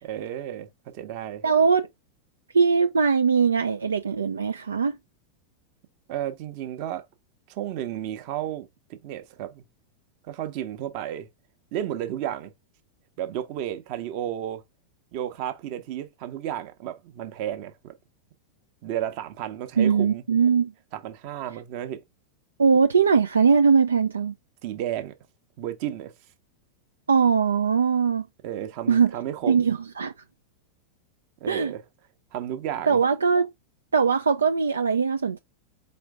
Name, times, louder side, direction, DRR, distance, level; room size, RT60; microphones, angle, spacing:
voice 1, 0.0-1.4 6.1-7.0 7.5-9.6 10.2-11.3 11.7-12.5 13.2-14.6 15.1-17.9 18.8-20.2 20.9-22.0 24.6-25.2 25.6-26.1 28.4-29.6 31.4-31.8 32.3-33.0, right 11 dB, 45° right, 0.8 m, -32 dB
voice 2, 1.4-1.9 2.5-5.0 19.8-20.7 22.6-24.3 27.1-28.3 28.9-29.1 29.5-30.1 31.5-31.7 32.9-33.5 33.9-35.4, right 5 dB, 75° right, 0.3 m, -21 dB
4.3 x 3.2 x 3.5 m
figure-of-eight pair, 90°, 0 cm